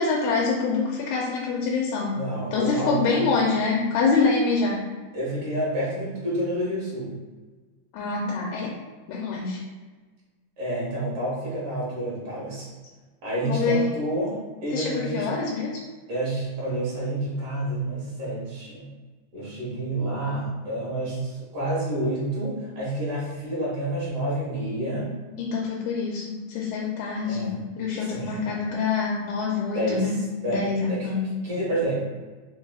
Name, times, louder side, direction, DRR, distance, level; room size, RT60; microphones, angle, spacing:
voice 1, 0.0-2.2 2.5-4.8 7.9-8.7 9.1-9.6 13.4-13.9 14.7-15.8 25.4-27.5 27.8-30.2 30.5-31.2, left 4 dB, 80° left, -2 dB, 2.0 m, -25 dB
voice 2, 2.1-3.4 5.1-7.2 10.6-12.7 13.2-15.3 16.1-18.9 19.3-25.1 27.2-27.6 28.0-28.4 29.8-30.2 30.4-31.1 31.4-31.9, right 1 dB, 55° right, -7 dB, 2.1 m, -29 dB
4.7 x 4.3 x 2.3 m, 1.4 s
omnidirectional pair, 3.5 m